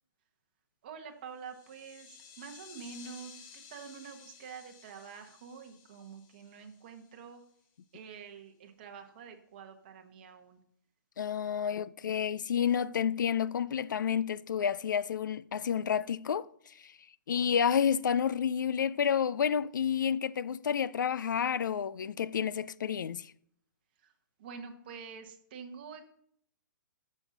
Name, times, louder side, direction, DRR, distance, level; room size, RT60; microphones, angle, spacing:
voice 1, 0.8-7.4 7.9-10.6 24.0-24.1 24.4-26.1, right 6 dB, 30° right, 1.2 m, -47 dB
sound 1, 1.3-7.4, left 7 dB, 20° left, 0.6 m, -55 dB
voice 2, 11.2-16.9 17.3-23.3, left 8 dB, 70° left, 0.4 m, -30 dB
13.0 x 6.4 x 3.9 m
hypercardioid pair, 180°, 11 cm